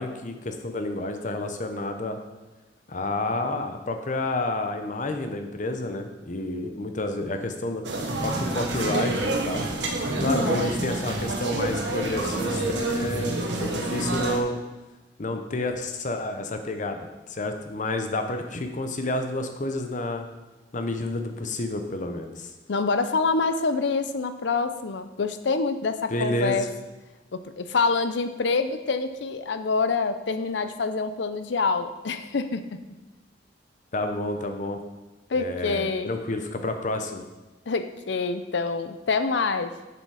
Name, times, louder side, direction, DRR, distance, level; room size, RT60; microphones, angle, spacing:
voice 1, 0.0-2.2 2.9-7.8 8.2-9.7 10.2-14.6 15.2-20.2 20.7-22.5 26.1-26.7 33.9-34.8 35.3-37.2, left 2 dB, 45° left, 6 dB, 0.8 m, -30 dB
sound 1, 7.8-14.4, right 2 dB, 75° right, 1.2 m, -28 dB
voice 2, 10.3-10.7 22.7-26.7 27.3-32.8 35.3-36.2 37.7-39.7, left 4 dB, 70° left, 10 dB, 0.6 m, -26 dB
7.1 x 6.9 x 4.8 m, 1.1 s
head